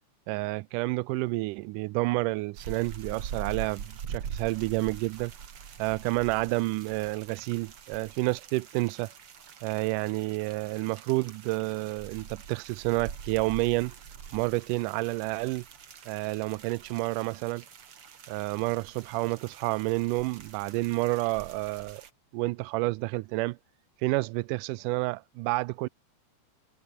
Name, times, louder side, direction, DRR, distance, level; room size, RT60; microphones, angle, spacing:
voice 1, 0.3-5.3 5.8-9.1 9.6-13.9 14.3-15.6 16.1-17.6 18.3-22.0 22.3-23.6 24.0-25.9, right 22 dB, 90° right, 2.1 m, -29 dB
sound 1, 2.6-22.1, right 7 dB, 45° right, 2.7 m, -44 dB
omnidirectional pair, 3.6 m